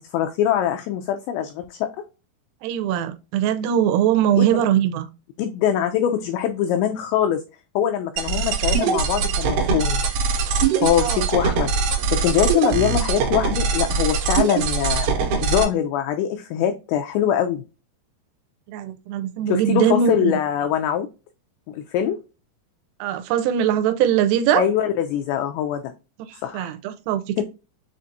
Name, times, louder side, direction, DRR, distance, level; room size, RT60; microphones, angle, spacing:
voice 1, 0.0-1.9 4.4-4.5 5.4-7.4 7.8-10.0 10.8-15.1 15.4-17.6 19.5-21.1 21.7-22.2 24.5-25.9 26.4-26.7 27.4-27.5, left 10 dB, 90° left, 2.5 m, -23 dB
voice 2, 2.6-5.1 11.0-11.2 18.7-20.3 23.0-24.6 26.3-27.4, right 9 dB, 90° right, 3.1 m, -21 dB
sound 1, 8.2-15.7, right 5 dB, 75° right, 2.7 m, -22 dB
7.3 x 2.5 x 2.6 m
omnidirectional pair, 5.6 m